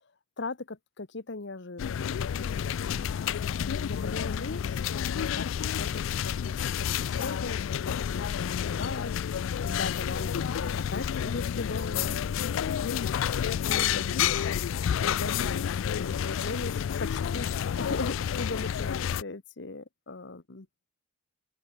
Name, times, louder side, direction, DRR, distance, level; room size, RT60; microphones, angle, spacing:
voice 1, 0.4-3.1 3.6-12.2 13.6-14.7 15.0-17.5 17.8-20.7, left 3 dB, 65° left, 1.2 m, -39 dB
sound 1, 1.8-19.2, left 8 dB, 80° left, 0.3 m, -30 dB
head